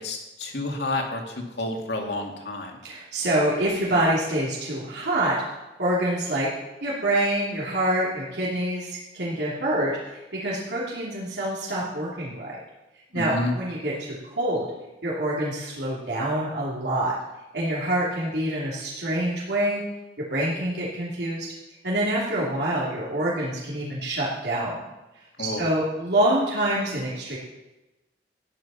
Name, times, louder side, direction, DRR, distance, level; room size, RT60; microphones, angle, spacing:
voice 1, 0.0-2.8 13.1-13.5 25.4-25.6, left 2 dB, 70° left, 1 dB, 2.4 m, -30 dB
voice 2, 2.8-6.5 6.8-12.6 13.1-14.7 15.0-17.1 17.5-19.8 20.2-21.5 21.8-24.8 25.4-27.4, right 1 dB, 70° right, -6 dB, 3.1 m, -26 dB
14.0 x 10.5 x 5.7 m, 1.0 s
head